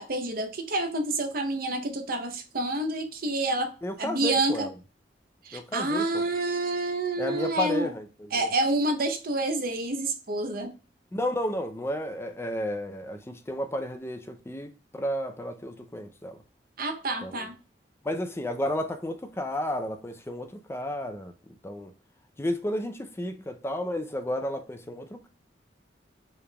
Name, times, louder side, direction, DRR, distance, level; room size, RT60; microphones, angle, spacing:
voice 1, 0.0-4.7 5.4-7.9 8.3-10.8 16.8-17.6, right 2 dB, 55° right, 0.7 m, -28 dB
voice 2, 3.8-4.7 5.5-6.0 7.2-8.5 11.1-16.4 17.2-17.5 18.0-21.3 21.6-21.9 22.4-25.3, equal, 15° left, 0.5 m, -32 dB
4.8 x 3.3 x 2.2 m
head